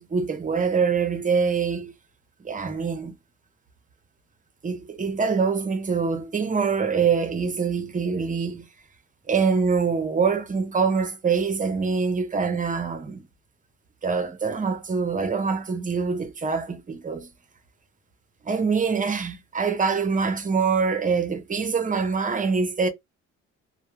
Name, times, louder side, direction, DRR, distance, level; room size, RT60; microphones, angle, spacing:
voice 1, 0.0-1.9 2.4-3.1 4.6-8.7 9.3-13.3 14.0-17.3 18.4-22.9, right 5 dB, 25° right, 0.6 m, -24 dB
2.2 x 2.0 x 2.9 m
cardioid pair, 90°, 30 cm